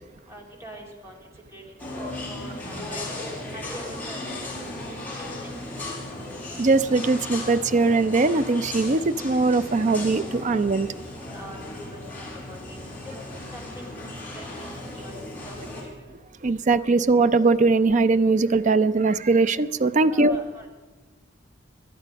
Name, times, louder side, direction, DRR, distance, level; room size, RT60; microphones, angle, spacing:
voice 1, 0.3-1.2 1.5-3.0 3.5-4.9 5.2-5.9 11.3-13.0 13.5-15.2 15.4-16.1 20.1-20.7, equal, 15° right, 0 dB, 2.6 m, -44 dB
sound 1, 1.8-15.8, left 2 dB, 10° left, 4.0 m, -36 dB
voice 2, 6.6-10.9 16.4-20.4, right 3 dB, 40° right, 13 dB, 0.5 m, -20 dB
18.0 x 11.5 x 5.2 m, 1.3 s
head